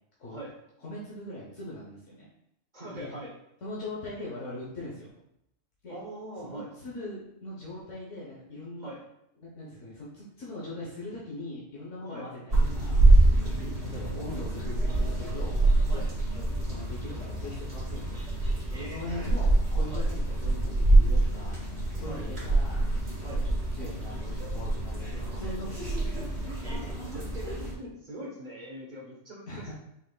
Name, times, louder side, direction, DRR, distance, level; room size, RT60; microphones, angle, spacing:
voice 1, 0.8-2.3 2.9-3.2 3.6-5.1 5.8-6.0 6.4-8.9 9.4-18.2 18.7-22.8 23.3-23.4 23.7-26.2 29.5-29.7, left 1 dB, 80° left, -5 dB, 1.3 m, -41 dB
voice 2, 2.7-3.3 5.9-6.7 8.8-9.0 12.1-12.3 15.9-16.1 18.7-19.4 19.9-20.1 22.0-22.2 23.2-23.4 26.6-29.7, right 1 dB, 40° right, -3 dB, 1.1 m, -42 dB
sound 1, 12.5-27.7, right 2 dB, 55° right, 2.1 m, -26 dB
6.1 x 3.7 x 2.3 m, 0.79 s
omnidirectional pair, 1.3 m